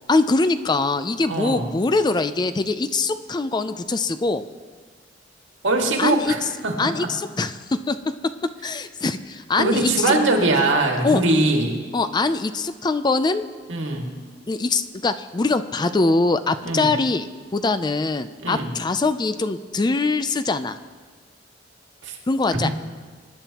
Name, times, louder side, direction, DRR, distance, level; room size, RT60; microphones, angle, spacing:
voice 1, 0.1-4.4 6.0-6.3 6.8-8.0 8.6-10.1 11.0-11.2 11.9-13.4 14.5-17.3 17.5-20.8 22.3-22.7, left 3 dB, 25° left, 11 dB, 0.4 m, -22 dB
voice 2, 1.3-1.7 5.6-7.1 9.6-11.7 13.7-14.1 16.6-16.9 18.4-18.7 22.0-22.2 22.5-22.7, right 2 dB, 85° right, 1 dB, 2.0 m, -22 dB
23.5 x 10.5 x 2.9 m, 1.5 s
head